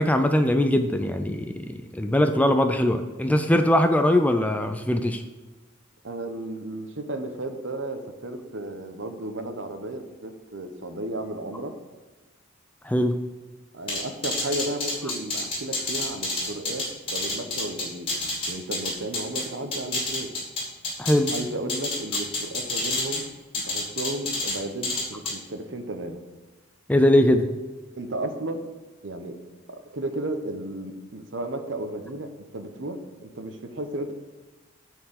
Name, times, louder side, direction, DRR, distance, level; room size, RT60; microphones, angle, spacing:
voice 1, 0.0-5.2 12.8-13.1 21.0-21.3 26.9-27.5, left 1 dB, 5° left, 7 dB, 0.4 m, -21 dB
voice 2, 6.0-11.7 13.7-20.3 21.3-23.2 23.5-26.2 28.0-28.6 29.0-29.4 29.9-34.1, right 1 dB, 65° right, 7 dB, 1.0 m, -34 dB
sound 1, 13.9-19.4 19.7-21.4 21.7-23.2 23.5-24.6 24.8-25.3, left 2 dB, 25° left, 2.6 m, -28 dB
9.0 x 4.7 x 6.5 m, 1.2 s
head